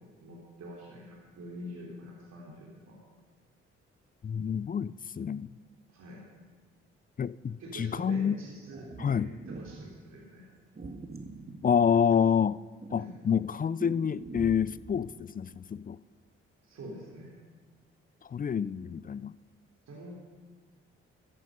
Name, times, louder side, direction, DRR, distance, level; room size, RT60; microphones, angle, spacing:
voice 1, 0.2-3.0 5.9-6.2 7.6-10.4 12.9-13.1 16.6-17.3 19.9-20.1, equal, 65° right, -3 dB, 3.3 m, -45 dB
voice 2, 4.2-5.5 7.2-8.4 9.0-9.3 11.6-12.6 12.9-16.0 18.2-19.3, left 7 dB, 30° left, 19 dB, 0.4 m, -28 dB
sound 1, 8.7-9.9 10.7-12.3 12.8-15.0, right 3 dB, 35° right, 1.9 m, -44 dB
14.0 x 10.5 x 5.4 m, 1.4 s
hypercardioid pair, 45°, 29 cm